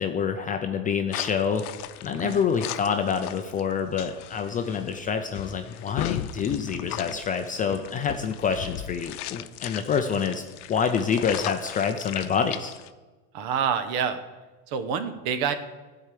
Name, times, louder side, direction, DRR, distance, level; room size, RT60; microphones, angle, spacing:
voice 1, 0.0-1.7 2.0-10.4 10.7-12.7, left 6 dB, 20° left, 6 dB, 0.4 m, -27 dB
sound 1, 1.1-12.9, left 13 dB, 80° left, 0.7 m, -37 dB
voice 2, 13.3-14.2 14.7-15.5, right 7 dB, 55° right, 9 dB, 1.2 m, -27 dB
12.5 x 4.7 x 8.4 m, 1.2 s
supercardioid pair, 135°, 44 cm